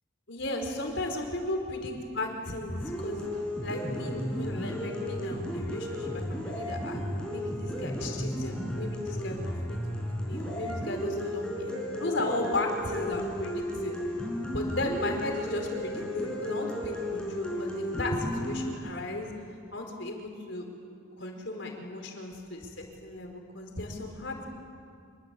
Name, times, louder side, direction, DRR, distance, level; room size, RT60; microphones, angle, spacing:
voice 1, 0.3-3.2 3.6-7.0 7.3-9.8 10.2-14.0 14.5-19.3 19.7-20.7 21.2-24.6, left 2 dB, 65° left, 3 dB, 4.7 m, -35 dB
sound 1, 2.7-18.7, equal, 5° left, 5.3 m, -34 dB
26.5 x 24.5 x 8.5 m, 2.3 s
head